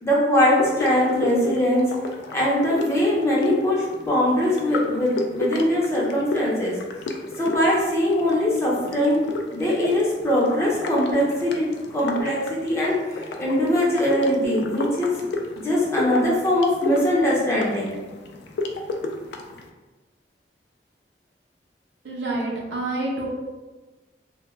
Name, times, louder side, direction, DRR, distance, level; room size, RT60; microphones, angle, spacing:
voice 1, 0.0-1.9 2.3-6.8 7.4-9.2 9.5-15.1 15.6-18.0, left 1 dB, 15° left, -5 dB, 0.5 m, -21 dB
sound 1, 0.6-19.7, left 2 dB, 70° left, 0.3 m, -33 dB
voice 2, 22.0-23.3, right 2 dB, 85° right, -3 dB, 0.6 m, -27 dB
2.2 x 2.1 x 3.0 m, 1.2 s
head